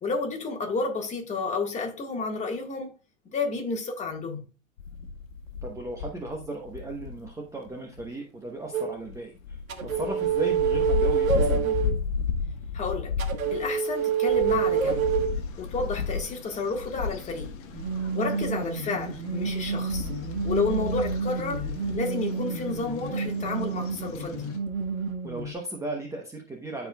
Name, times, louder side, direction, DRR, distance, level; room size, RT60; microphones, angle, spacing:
voice 1, 0.0-2.9 3.3-4.4 12.7-13.1 13.5-15.1 15.6-17.5 18.1-20.1 20.4-21.6 21.9-24.5, left 4 dB, 15° left, 1.7 m, -31 dB
sound 1, 4.8-7.3 7.7-7.8 8.0-8.1 9.0-9.2 9.4-18.6 19.0-22.0, left 5 dB, 70° left, 1.4 m, -33 dB
voice 2, 5.6-11.8 18.0-18.4 25.2-26.9, right 2 dB, 10° right, 1.0 m, -36 dB
sound 2, 8.7-8.9 9.7-11.9 13.2-15.3 17.7-25.5, right 6 dB, 85° right, 1.6 m, -28 dB
sound 3, 14.6-24.6, left 6 dB, 35° left, 1.2 m, -45 dB
13.0 x 4.8 x 2.3 m
hypercardioid pair, 125°, 40 cm